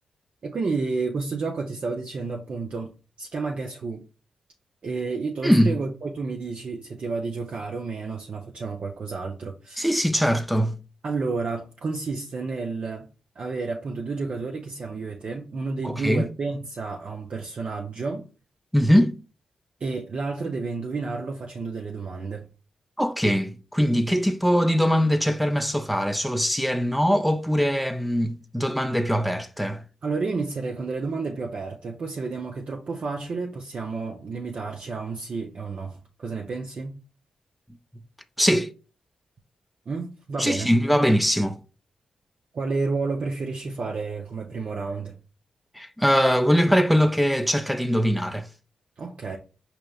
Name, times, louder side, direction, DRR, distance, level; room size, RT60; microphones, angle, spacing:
voice 1, 0.4-2.9 3.2-4.1 4.8-9.9 11.0-13.1 13.4-18.2 19.8-22.5 30.0-37.0 39.9-40.7 42.5-45.1 49.0-49.4, right 4 dB, 60° right, 0.5 m, -31 dB
voice 2, 5.4-5.7 9.8-10.8 15.8-16.3 18.7-19.2 23.0-29.8 38.4-38.7 40.4-41.6 45.8-48.5, equal, ahead, 0.4 m, -22 dB
5.0 x 2.9 x 2.3 m
supercardioid pair, 45°, 2 cm